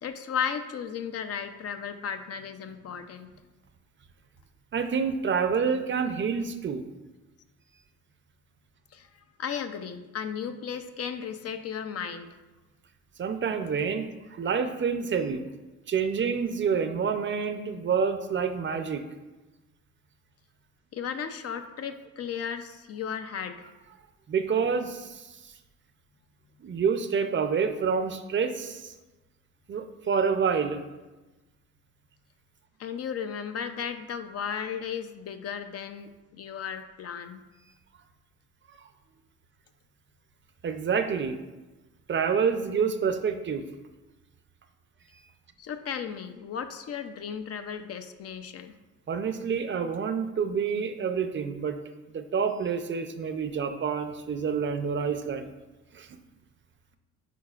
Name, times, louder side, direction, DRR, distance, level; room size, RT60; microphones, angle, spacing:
voice 1, 0.0-3.3 8.9-12.3 20.9-23.7 32.8-37.4 45.6-48.7, left 7 dB, 55° left, 8 dB, 0.6 m, -35 dB
voice 2, 4.7-6.8 13.2-15.4 15.9-19.0 24.3-25.5 26.6-28.9 29.7-30.8 40.6-41.4 42.1-43.6 49.1-51.8 52.1-55.5 55.9-56.1, right 6 dB, 40° right, 8 dB, 0.6 m, -28 dB
9.1 x 4.8 x 2.4 m, 1.1 s
cardioid pair, 90°, 30 cm